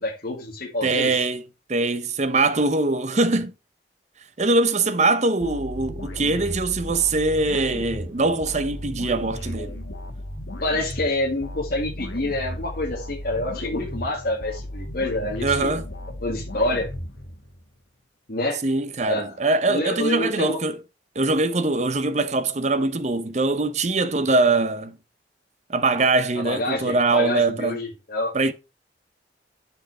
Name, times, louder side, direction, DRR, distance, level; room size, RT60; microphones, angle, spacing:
voice 1, 0.0-1.1 10.6-15.7 16.2-16.9 18.3-18.6 19.1-19.3 19.7-20.6 26.3-28.3, left 1 dB, 55° left, 2.0 m, -27 dB
voice 2, 0.8-1.4 1.7-3.5 4.4-9.8 15.4-15.9 18.6-20.8 21.2-25.0 25.7-27.8 28.3-28.5, right 3 dB, 40° right, 0.7 m, -22 dB
sound 1, 5.4-17.7, left 1 dB, 90° left, 1.5 m, -35 dB
7.8 x 4.6 x 4.7 m
head